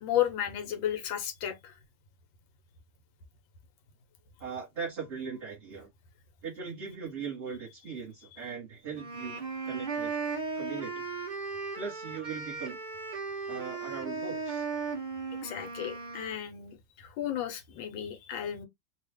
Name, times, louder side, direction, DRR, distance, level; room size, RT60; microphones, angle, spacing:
voice 1, 0.0-1.7 15.4-18.7, left 11 dB, 80° left, 1.6 m, -33 dB
voice 2, 4.4-5.9 6.4-10.1 10.6-11.0 11.7-12.8 13.5-14.7, right 6 dB, 35° right, 1.3 m, -39 dB
sound 1, 8.9-16.4, right 4 dB, 60° right, 0.5 m, -36 dB
3.3 x 2.4 x 3.4 m
omnidirectional pair, 2.1 m